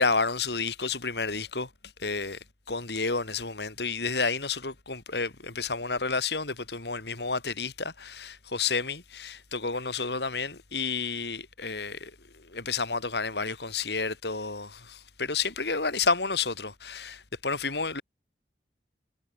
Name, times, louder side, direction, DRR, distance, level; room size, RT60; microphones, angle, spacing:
voice 1, 0.0-1.7 2.0-2.4 2.7-18.0, left 4 dB, 70° left, 3.6 m, -30 dB
head